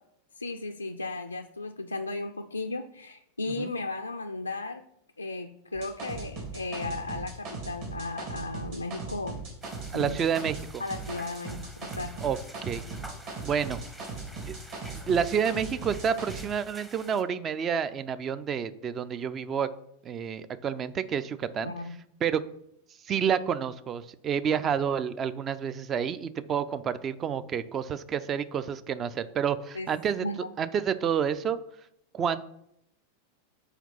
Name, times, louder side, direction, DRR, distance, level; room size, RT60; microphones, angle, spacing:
voice 1, 0.4-4.8 5.2-9.4 9.9-10.2 10.8-12.1 21.6-22.0 29.7-29.9 30.2-30.5, left 2 dB, 80° left, 6 dB, 0.3 m, -35 dB
sound 1, 5.7-10.6 10.9-16.4, right 4 dB, 50° right, 2.8 m, -38 dB
sound 2, 9.6-17.2, right 1 dB, 10° right, 0.8 m, -49 dB
voice 2, 9.9-10.8 12.2-12.8 13.4-13.8 14.5-14.6 15.1-19.7 20.0-21.7 22.2-22.4 23.1-30.3 30.6-31.6 32.1-32.5, right 7 dB, 25° right, 14 dB, 0.4 m, -29 dB
5.7 x 4.5 x 5.5 m, 0.76 s
figure-of-eight pair, 90°, 0 cm